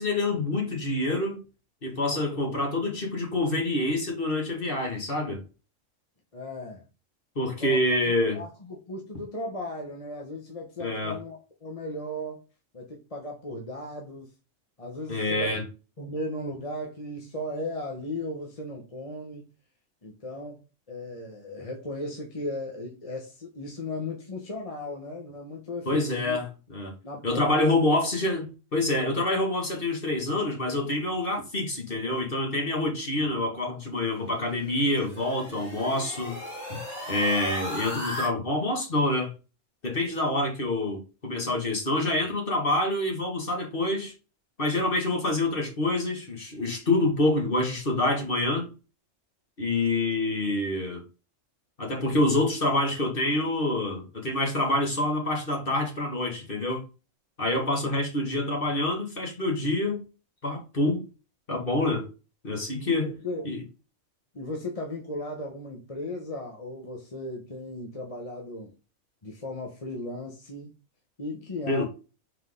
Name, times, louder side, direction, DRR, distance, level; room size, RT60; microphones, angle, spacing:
voice 1, 0.0-1.4 1.8-5.4 7.4-8.4 10.8-11.2 15.1-15.6 25.9-26.9 27.2-36.4 37.1-39.3 39.8-44.1 44.6-48.7 49.6-51.0 51.8-56.9 57.4-60.0 60.4-61.0 61.5-62.1 62.4-63.1 63.5-63.6 71.7-71.8, left 2 dB, 45° left, 2.2 m, -27 dB
voice 2, 6.3-6.8 7.6-7.8 8.3-12.4 12.7-14.3 14.8-15.6 16.0-19.5 20.0-26.4 27.0-27.6 62.8-63.4 64.3-68.7 69.2-70.7 71.2-71.8, left 1 dB, 30° left, 1.2 m, -36 dB
sound 1, 34.3-38.3, left 1 dB, 60° left, 2.7 m, -37 dB
5.9 x 4.5 x 3.8 m
omnidirectional pair, 1.3 m